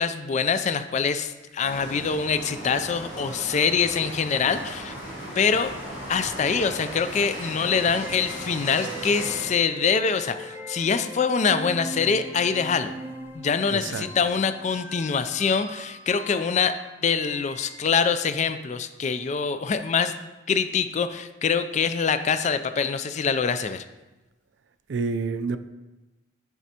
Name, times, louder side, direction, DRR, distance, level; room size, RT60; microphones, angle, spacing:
voice 1, 0.0-4.9 5.4-5.7 6.1-12.9 13.3-16.8 17.0-20.2 20.5-23.8, left 6 dB, 35° left, 11 dB, 0.3 m, -24 dB
sound 1, 1.6-9.5, equal, 75° left, 2.5 m, -37 dB
sound 2, 8.0-18.2, right 1 dB, 10° right, 0.5 m, -40 dB
voice 2, 13.7-14.1 24.9-25.6, right 4 dB, 65° right, 11 dB, 0.4 m, -28 dB
10.5 x 6.1 x 2.8 m, 1.1 s
head